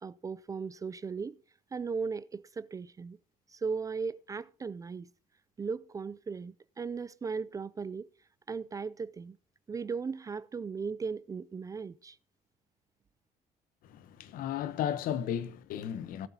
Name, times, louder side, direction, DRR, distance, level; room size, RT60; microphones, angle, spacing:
voice 1, 0.0-1.4 1.7-3.2 3.5-5.1 5.6-8.1 8.5-9.4 9.7-12.2, right 5 dB, 25° right, 0.4 m, -37 dB
voice 2, 13.9-16.3, left 10 dB, 75° left, 0.9 m, -34 dB
18.0 x 8.0 x 2.8 m
cardioid pair, 125°, 15 cm